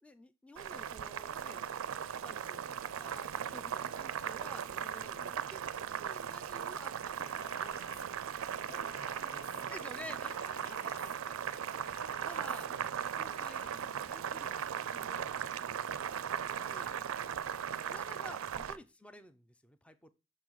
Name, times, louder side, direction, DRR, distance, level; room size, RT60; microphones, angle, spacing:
voice 1, 0.0-1.6 2.2-5.6 5.9-7.3 7.6-7.8 9.7-11.4 12.2-12.7 13.1-15.3 16.6-17.0 17.5-20.1, equal, 5° left, 11 dB, 0.4 m, -52 dB
Boiling, 0.5-18.8, right 8 dB, 80° right, 0.4 m, -38 dB
voice 2, 1.7-2.3 7.4-8.1 8.6-11.1 11.4-11.9 12.7-12.9 14.6-16.1 17.2-17.5 18.6-18.8, left 1 dB, 45° left, 6 dB, 1.3 m, -60 dB
sound 1, 7.2-8.0 8.7-9.6 10.2-11.1 11.7-12.7 13.3-13.7, left 5 dB, 65° left, 0.6 m, -53 dB
6.3 x 3.9 x 4.5 m, 0.27 s
head